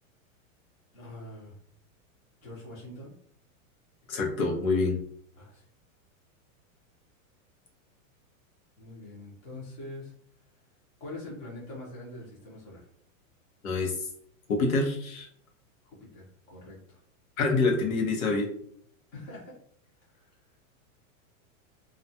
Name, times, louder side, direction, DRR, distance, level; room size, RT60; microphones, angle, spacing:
voice 1, 0.9-1.5 2.4-3.1 5.4-5.7 8.8-10.1 11.0-12.9 15.8-17.0 19.1-19.5 20.1-20.3, left 1 dB, 25° left, -5 dB, 0.7 m, -44 dB
voice 2, 4.1-5.0 13.6-14.1 14.5-15.3 17.4-18.5, left 3 dB, 80° left, 1 dB, 0.9 m, -26 dB
2.4 x 2.2 x 2.7 m, 0.63 s
supercardioid pair, 175°, 41 cm